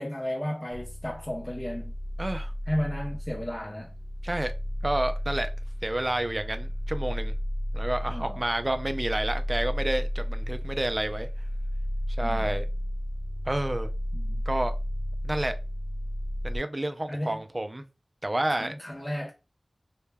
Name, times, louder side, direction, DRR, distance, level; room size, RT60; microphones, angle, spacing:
voice 1, 0.0-1.9 2.7-3.9 8.1-8.4 12.2-12.5 14.1-14.4 17.1-17.4 18.5-19.3, equal, 15° left, 0.5 m, -33 dB
sound 1, 0.7-16.6, equal, 85° left, 0.6 m, -33 dB
voice 2, 2.2-2.5 4.2-4.5 4.8-5.5 5.8-7.3 7.7-11.3 12.2-12.7 13.5-13.9 14.5-14.8 15.2-15.6 16.4-17.8 18.2-18.7, right 1 dB, 35° right, 0.3 m, -29 dB
2.1 x 2.1 x 3.3 m
wide cardioid pair, 60°, 0 cm